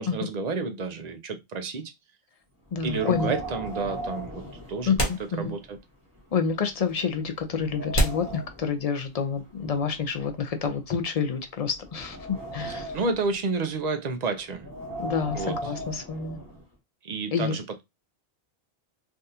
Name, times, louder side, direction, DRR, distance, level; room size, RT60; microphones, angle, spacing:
voice 1, 0.0-1.9 2.8-4.4 4.7-4.9 5.4-5.8 12.7-14.7 15.3-15.6 17.0-17.8, right 4 dB, 50° right, 0.6 m, -30 dB
voice 2, 2.7-3.3 4.9-5.6 6.3-13.0 15.0-16.4 17.3-17.6, left 6 dB, 50° left, 0.4 m, -28 dB
Wind, 2.7-5.4 5.7-5.8 6.5-6.6 7.1-8.7 9.5-11.1 11.6-13.3 14.5-16.6, right 1 dB, 20° right, 1.2 m, -38 dB
sound 1, 4.3-4.4 4.9-5.9 6.2-6.3 7.0-7.1 7.9-9.2, equal, 30° left, 1.1 m, -29 dB
3.5 x 2.4 x 2.7 m
omnidirectional pair, 1.1 m